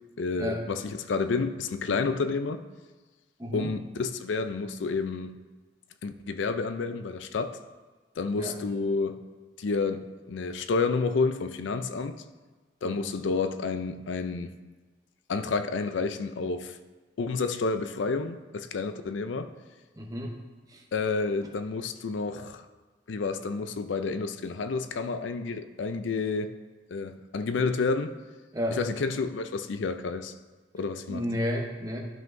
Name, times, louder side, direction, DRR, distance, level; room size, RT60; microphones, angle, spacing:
voice 1, 0.2-2.6 3.5-5.3 6.0-7.6 8.2-9.2 9.6-12.2 12.8-14.5 15.3-16.8 17.2-19.5 20.9-22.6 23.1-26.5 26.9-28.1 28.8-30.3 30.7-31.3, left 4 dB, 80° left, 0.4 m, -30 dB
voice 2, 3.4-3.8 8.4-8.6 12.8-13.0 20.0-20.4 20.7-20.8 28.5-28.8 31.1-32.0, equal, 20° right, 0.9 m, -31 dB
12.0 x 5.6 x 2.6 m
head